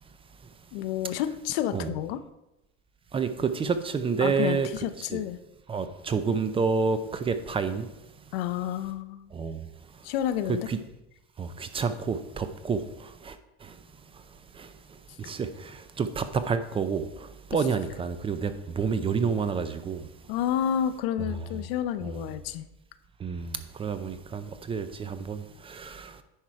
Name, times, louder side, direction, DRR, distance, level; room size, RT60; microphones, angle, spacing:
voice 1, 0.7-2.2 4.2-5.4 8.3-9.4 10.0-10.7 20.3-22.7, left 10 dB, 85° left, 0.7 m, -30 dB
voice 2, 3.1-4.7 5.0-5.2 5.7-7.9 9.3-10.1 10.5-10.8 11.4-13.8 14.1-20.1 21.4-21.5 22.0-22.3 23.2-26.2, right 5 dB, 20° right, 0.4 m, -30 dB
10.0 x 4.8 x 4.5 m
cardioid pair, 140°, 29 cm